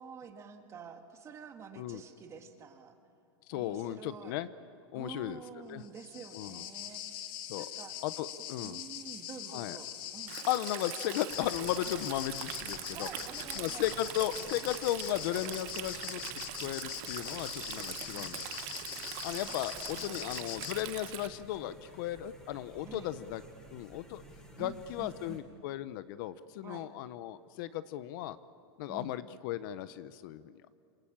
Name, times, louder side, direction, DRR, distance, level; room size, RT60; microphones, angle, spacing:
voice 1, 0.0-2.9 3.5-4.4 4.9-8.0 8.6-10.4 12.9-13.9 18.1-18.3 19.9-21.0 22.9-23.1 24.6-25.4 26.6-26.9 28.9-29.1, right 6 dB, 20° right, 6 dB, 1.9 m, -49 dB
voice 2, 3.5-4.5 4.9-5.4 5.7-5.8 6.3-6.6 7.5-7.7 8.0-8.8 9.5-9.8 10.5-13.1 13.6-18.4 19.2-23.4 23.7-24.2 24.6-28.4 28.8-30.6, left 13 dB, 50° left, 14 dB, 0.8 m, -36 dB
sound 1, 5.8-20.8, left 11 dB, 35° left, 1.6 m, -42 dB
Stream, 10.3-21.3, right 15 dB, 45° right, 1.1 m, -43 dB
sound 2, 11.3-25.4, right 1 dB, 5° left, 4.0 m, -53 dB
27.0 x 23.5 x 8.8 m, 2.5 s
supercardioid pair, 160°, 14 cm